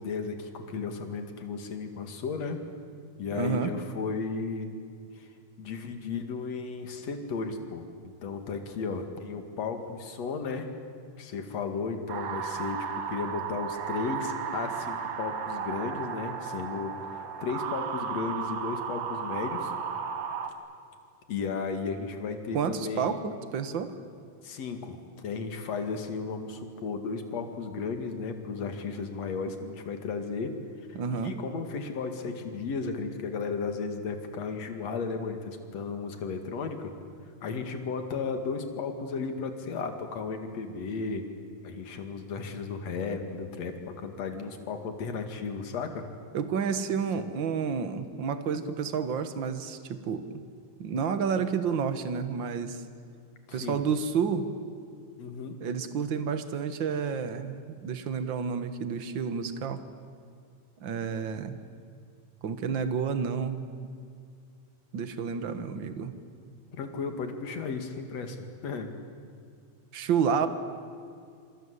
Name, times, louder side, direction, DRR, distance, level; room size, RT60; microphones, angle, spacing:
voice 1, 0.0-2.6 3.2-4.7 5.2-5.3 5.6-10.7 11.2-19.7 21.3-23.3 24.4-30.5 30.9-36.9 37.4-41.2 41.6-46.0 53.5-53.8 55.2-55.6 66.7-68.4 68.6-68.9, left 5 dB, 55° left, 6 dB, 3.2 m, -34 dB
voice 2, 3.3-3.7 22.5-23.9 30.9-31.4 46.3-50.4 50.8-52.8 53.5-54.5 55.6-59.8 60.8-61.6 62.4-63.7 64.9-66.1 69.9-70.5, right 6 dB, 50° right, 10 dB, 1.5 m, -30 dB
sound 1, 12.1-20.5, right 7 dB, 90° right, 3.5 m, -34 dB
27.0 x 25.5 x 8.3 m, 2.3 s
omnidirectional pair, 3.9 m